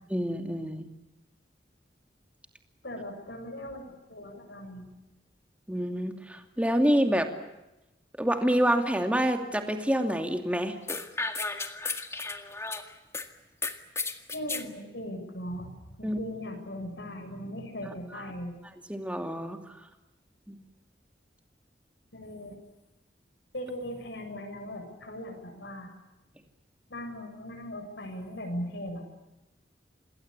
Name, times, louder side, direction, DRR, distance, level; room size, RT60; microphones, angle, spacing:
voice 1, 0.1-0.9 5.7-7.3 8.2-10.8 16.0-16.2 18.1-18.2 18.9-19.6 20.5-20.6, equal, 5° right, 6 dB, 2.6 m, -27 dB
voice 2, 2.8-3.8 4.1-4.9 14.3-15.7 16.0-18.5 22.1-22.6 23.5-25.9 26.9-29.0, equal, 75° left, 3 dB, 7.7 m, -38 dB
sound 1, 10.9-13.3 13.6-14.7, left 3 dB, 15° left, 1.9 m, -33 dB
28.0 x 21.0 x 8.4 m, 0.97 s
head